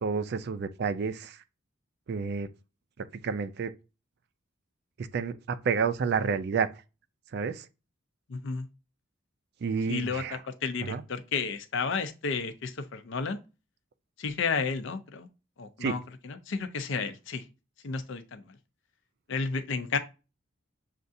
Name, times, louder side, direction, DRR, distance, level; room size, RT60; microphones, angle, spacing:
voice 1, 0.0-1.4 2.1-2.5 3.0-3.7 5.0-6.7 7.3-7.7 9.6-10.4 10.8-11.0 15.8-16.0, right 5 dB, 50° right, 0.3 m, -30 dB
voice 2, 8.3-8.7 9.9-13.4 14.2-15.3 15.6-17.4 17.8-18.6 19.3-20.0, left 5 dB, 60° left, 0.5 m, -32 dB
6.5 x 2.4 x 2.6 m
head